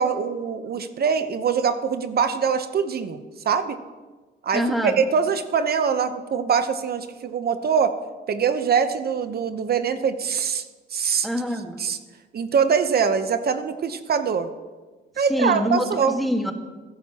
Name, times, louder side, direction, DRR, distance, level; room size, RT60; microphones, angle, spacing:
voice 1, 0.0-3.8 4.4-7.9 8.3-10.7 10.9-11.3 11.8-12.0 12.3-14.5 15.2-16.2, right 6 dB, 50° right, 10 dB, 0.9 m, -23 dB
voice 2, 4.5-5.0 11.2-11.8 15.3-16.5, equal, ahead, 4 dB, 1.6 m, -25 dB
21.0 x 11.0 x 2.9 m, 1.3 s
cardioid pair, 90°, 20 cm